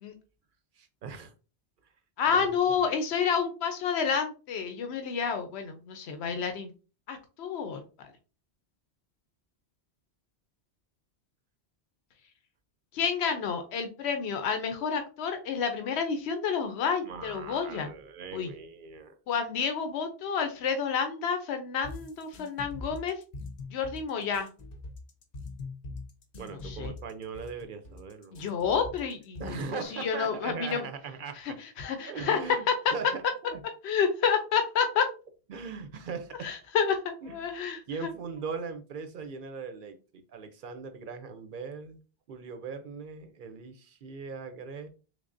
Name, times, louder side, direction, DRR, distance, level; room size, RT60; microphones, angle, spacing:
voice 1, 0.8-1.3 2.3-2.6 17.1-19.1 26.4-28.6 29.4-31.6 32.0-32.7 32.9-33.2 33.5-33.6 35.5-36.5 37.2-37.5 37.9-42.0 42.3-44.9, right 5 dB, 60° right, 8 dB, 0.7 m, -40 dB
voice 2, 2.2-6.7 7.1-8.1 12.9-17.9 18.3-18.5 19.3-23.1 23.7-24.5 26.6-26.9 28.3-29.6 29.9-30.9 31.4-32.4 32.7-32.8 33.8-35.1 36.4-37.0 37.3-37.8, left 6 dB, 85° left, 7 dB, 0.9 m, -29 dB
sound 1, 21.8-29.9, left 3 dB, 50° left, 0.6 m, -42 dB
3.6 x 3.3 x 2.5 m, 0.34 s
omnidirectional pair, 1.1 m